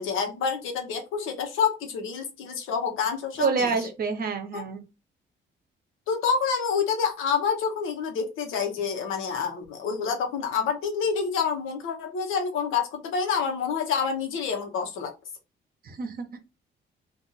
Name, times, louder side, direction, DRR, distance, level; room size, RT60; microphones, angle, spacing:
voice 1, 0.0-3.8 4.5-4.6 6.1-15.1, left 6 dB, 90° left, 4 dB, 0.9 m, -28 dB
voice 2, 3.4-4.8 15.8-16.4, right 5 dB, 50° right, 6 dB, 0.9 m, -28 dB
2.5 x 2.5 x 4.0 m, 0.27 s
cardioid pair, 90°, 20 cm